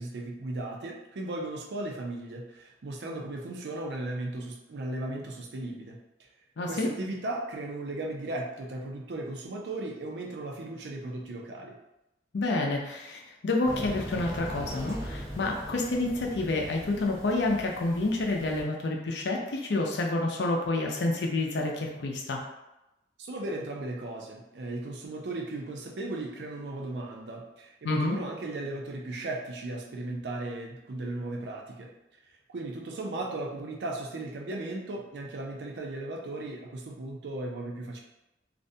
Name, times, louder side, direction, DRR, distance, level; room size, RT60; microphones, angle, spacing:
voice 1, 0.0-6.3 6.7-11.7 23.2-31.9 32.5-38.0, right 2 dB, 70° right, 1 dB, 0.5 m, -36 dB
voice 2, 6.6-6.9 12.3-22.4 27.8-28.2, left 2 dB, 75° left, 0 dB, 0.5 m, -29 dB
sound 1, 13.6-18.6, equal, 20° right, 0.7 m, -40 dB
2.5 x 2.2 x 2.6 m, 0.93 s
head